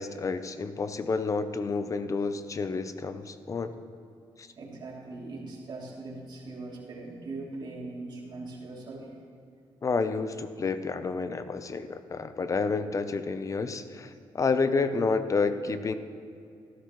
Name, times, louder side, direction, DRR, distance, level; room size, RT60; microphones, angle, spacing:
voice 1, 0.0-3.7 4.4-4.5 9.8-15.9, left 4 dB, 35° left, 11 dB, 0.7 m, -29 dB
voice 2, 4.6-9.1, right 2 dB, 55° right, -4 dB, 3.2 m, -40 dB
14.5 x 12.5 x 3.2 m, 2.5 s
cardioid pair, 90°, 9 cm